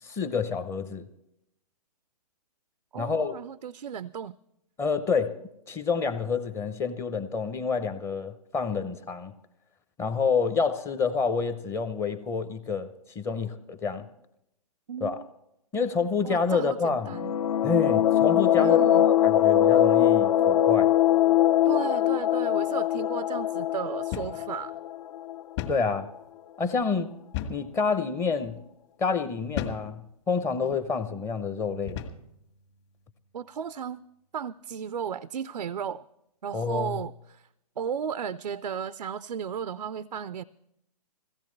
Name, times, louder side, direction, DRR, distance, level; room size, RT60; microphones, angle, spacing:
voice 1, 0.0-1.0 3.0-3.3 4.8-5.4 5.7-9.3 10.0-14.1 15.0-15.2 15.7-17.1 17.6-20.9 25.7-26.1 26.6-27.1 27.5-28.6 29.0-32.0 36.5-37.0, left 5 dB, 10° left, 0.6 m, -28 dB
voice 2, 2.9-4.4 14.9-15.3 16.2-17.4 18.6-19.1 21.6-24.7 33.3-34.0 34.3-36.1 36.4-37.5 37.8-40.4, right 7 dB, 90° right, 0.4 m, -34 dB
sound 1, 17.0-25.6, left 11 dB, 60° left, 0.4 m, -22 dB
sound 2, 24.1-24.4 24.7-24.8 25.6-25.9 27.3-27.7 28.4-28.6 29.6-29.9 30.6-30.9 31.9-32.3, left 9 dB, 45° left, 1.6 m, -34 dB
Bowed string instrument, 31.7-34.1, equal, 85° left, 1.3 m, -51 dB
21.0 x 16.5 x 3.2 m
hypercardioid pair, 140°, 20 cm